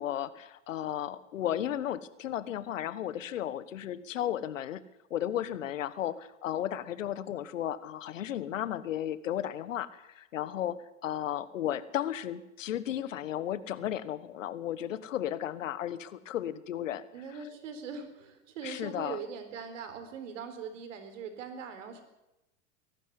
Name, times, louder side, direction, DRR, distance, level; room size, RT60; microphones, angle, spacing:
voice 1, 0.0-4.8 5.1-17.0 18.6-19.2, left 11 dB, 85° left, 16 dB, 1.3 m, -34 dB
voice 2, 17.1-22.0, right 6 dB, 75° right, 9 dB, 4.2 m, -41 dB
22.0 x 12.0 x 9.8 m, 0.94 s
hypercardioid pair, 105°, 38 cm